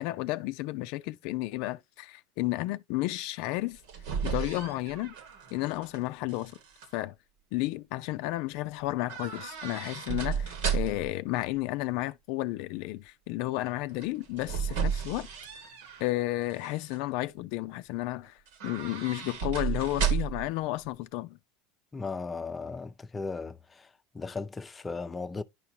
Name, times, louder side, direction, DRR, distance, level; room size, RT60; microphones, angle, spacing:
voice 1, 0.0-3.8 4.2-5.1 5.5-6.6 6.9-7.1 7.5-15.3 16.0-21.4, left 18 dB, 65° left, 0.4 m, -32 dB
sound 1, 3.6-6.0 6.3-6.9 9.1-11.2 14.0-16.1 16.5-17.0 18.5-20.5 20.8-20.9, right 7 dB, 75° right, 1.6 m, -33 dB
voice 2, 21.9-23.6 24.1-25.4, left 4 dB, 20° left, 0.6 m, -36 dB
10.5 x 4.6 x 2.7 m
supercardioid pair, 105°, 0 cm